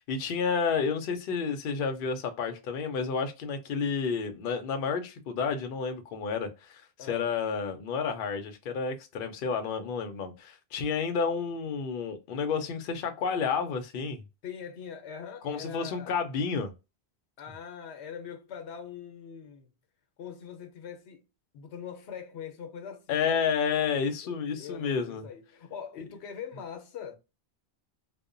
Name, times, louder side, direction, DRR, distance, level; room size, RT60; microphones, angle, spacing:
voice 1, 0.0-6.8 7.1-14.2 15.4-16.7 23.1-25.2, left 5 dB, 60° left, 0.7 m, -30 dB
voice 2, 7.0-7.3 14.4-16.1 17.4-19.7 20.2-21.3 21.5-23.4 24.2-27.2, left 7 dB, 90° left, 0.9 m, -42 dB
2.7 x 2.1 x 2.4 m
omnidirectional pair, 1.1 m